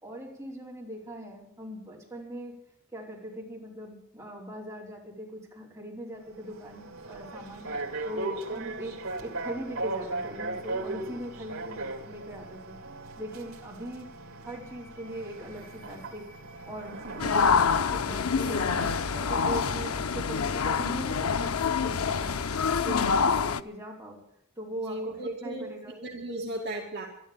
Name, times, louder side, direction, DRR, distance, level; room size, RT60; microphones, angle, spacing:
voice 1, 0.0-2.6 2.9-7.8 8.0-8.9 9.2-12.8 13.2-14.1 14.4-16.3 16.7-18.8 19.1-22.4 22.8-24.2 24.6-25.9, right 1 dB, 15° right, -4 dB, 4.9 m, -40 dB
sound 1, 6.2-20.0, right 2 dB, 75° right, 2.8 m, -38 dB
voice 2, 17.0-17.6 24.8-27.1, right 1 dB, 50° right, -1 dB, 2.4 m, -37 dB
sound 2, 17.2-23.6, left 5 dB, 85° left, 0.7 m, -26 dB
12.5 x 12.5 x 9.0 m, 0.75 s
head